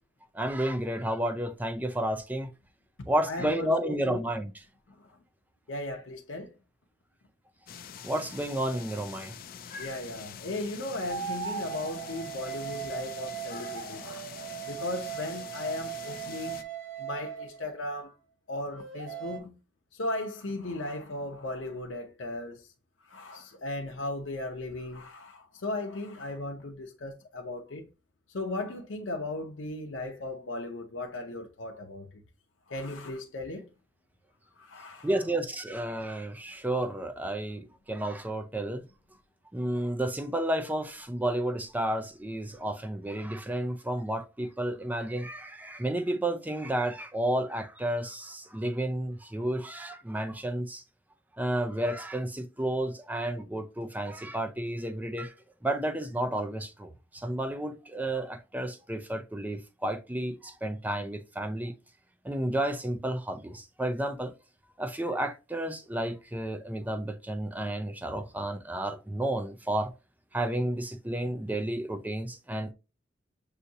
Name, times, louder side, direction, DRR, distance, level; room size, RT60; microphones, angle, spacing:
voice 1, 0.3-2.5 3.1-4.5 8.0-9.4 35.0-38.8 39.5-50.8 51.4-55.3 55.6-61.8 62.2-64.3 64.8-69.9 70.3-72.7, right 1 dB, 10° right, 0.5 m, -31 dB
voice 2, 3.3-4.2 4.9-5.2 5.7-6.5 9.8-14.2 14.7-16.6 17.0-18.2 18.5-19.6 19.9-22.7 23.0-27.9 28.3-32.2 32.7-33.7 34.5-35.1, left 2 dB, 85° left, 0.7 m, -37 dB
sound 1, 7.7-16.6, left 7 dB, 50° left, 0.4 m, -45 dB
sound 2, 11.1-17.8 18.7-19.4, right 9 dB, 90° right, 0.9 m, -38 dB
6.5 x 2.7 x 2.7 m
head